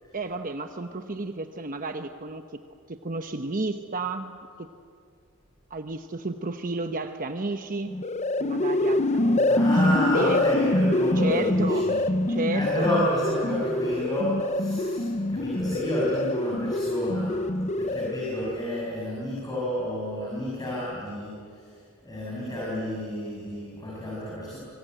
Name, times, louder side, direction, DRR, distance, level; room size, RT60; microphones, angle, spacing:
voice 1, 0.1-2.4 2.9-4.3 4.6-4.7 5.7-7.9 8.4-10.4 11.2-12.0 12.3-12.9, right 3 dB, 40° right, 7 dB, 1.0 m, -32 dB
sound 1, 7.9-18.4, left 1 dB, 35° left, 0.8 m, -25 dB
voice 2, 9.5-12.0 12.5-24.6, left 1 dB, 20° left, -5 dB, 6.6 m, -30 dB
25.5 x 24.0 x 9.2 m, 2.2 s
head